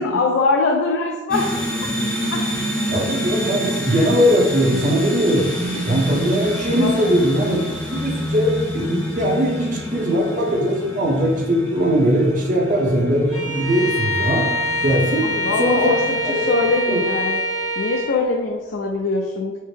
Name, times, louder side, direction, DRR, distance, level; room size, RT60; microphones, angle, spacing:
voice 1, 0.0-1.8 2.3-2.5 5.7-5.9 6.1-6.3 6.8-7.1 15.3-17.4 17.8-19.6, left 3 dB, 60° left, 1 dB, 0.3 m, -22 dB
sound 1, 1.3-16.7, equal, 5° left, 0.6 m, -28 dB
voice 2, 2.9-5.5 5.9-7.6 7.9-14.5 14.8-15.3 15.6-15.9 16.2-16.5 16.9-17.0, equal, 40° right, -1 dB, 0.7 m, -20 dB
Bowed string instrument, 13.3-18.2, left 1 dB, 30° left, 0.9 m, -24 dB
4.3 x 2.0 x 3.2 m, 1.2 s
head